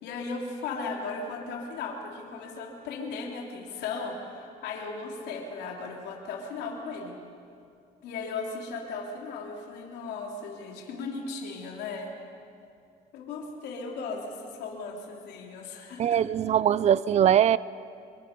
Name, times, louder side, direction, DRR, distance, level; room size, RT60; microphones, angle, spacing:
voice 1, 0.0-7.2 8.0-12.1 13.1-16.2, left 4 dB, 80° left, 0 dB, 3.3 m, -36 dB
voice 2, 16.0-17.6, right 10 dB, 40° right, 19 dB, 0.5 m, -21 dB
25.5 x 22.0 x 5.3 m, 2.4 s
cardioid pair, 110°, 17 cm